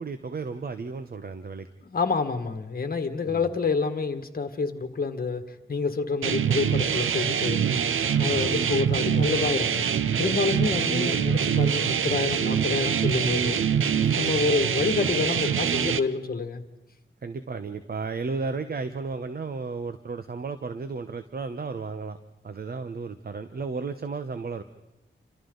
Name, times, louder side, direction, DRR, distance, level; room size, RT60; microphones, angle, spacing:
voice 1, 0.0-1.7 3.2-3.5 8.3-8.6 17.2-22.2 22.4-24.6, right 4 dB, 50° right, 10 dB, 1.0 m, -33 dB
voice 2, 1.8-7.6 8.2-9.9 10.2-13.6 14.2-16.6, left 4 dB, 45° left, 7 dB, 1.8 m, -28 dB
sound 1, 6.2-16.0, right 7 dB, 80° right, 0.8 m, -24 dB
29.0 x 26.0 x 4.0 m, 0.93 s
wide cardioid pair, 105°, 20 cm